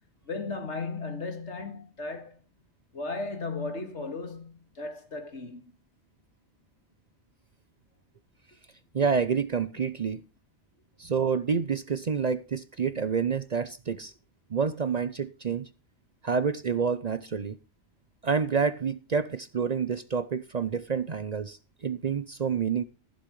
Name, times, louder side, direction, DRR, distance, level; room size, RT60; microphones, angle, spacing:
voice 1, 0.2-2.4 2.9-5.7, left 3 dB, 80° left, 2.3 m, -36 dB
voice 2, 8.9-10.2 11.0-14.1 14.5-15.7 16.2-17.6 18.2-22.8, right 6 dB, 45° right, 0.6 m, -28 dB
15.0 x 11.5 x 3.1 m
omnidirectional pair, 1.2 m